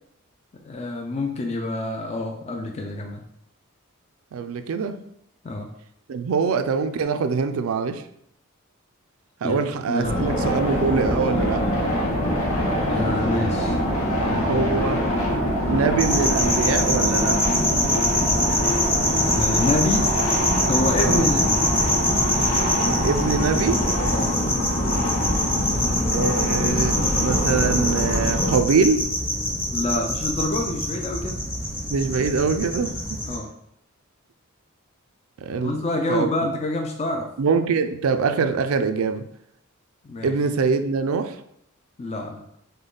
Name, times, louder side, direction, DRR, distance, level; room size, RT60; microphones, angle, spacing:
voice 1, 0.6-3.2 5.4-5.7 9.4-9.6 9.9-10.3 12.9-13.8 14.2-14.9 19.2-20.1 20.7-21.6 24.1-24.4 29.7-31.4 33.3-33.5 35.6-37.3 40.0-40.4 42.0-42.4, left 2 dB, 30° left, 0.4 m, -27 dB
voice 2, 4.3-5.0 6.1-8.0 9.4-11.7 14.5-15.2 15.7-17.4 21.0-21.3 23.0-23.8 26.1-29.1 31.9-33.0 35.4-35.8 36.1-36.3 37.4-39.3 40.2-41.4, right 5 dB, 75° right, 0.4 m, -23 dB
sound 1, 10.0-28.6, equal, 85° left, 0.9 m, -24 dB
sound 2, 16.0-33.4, left 1 dB, 10° left, 0.8 m, -25 dB
5.1 x 2.2 x 3.8 m
head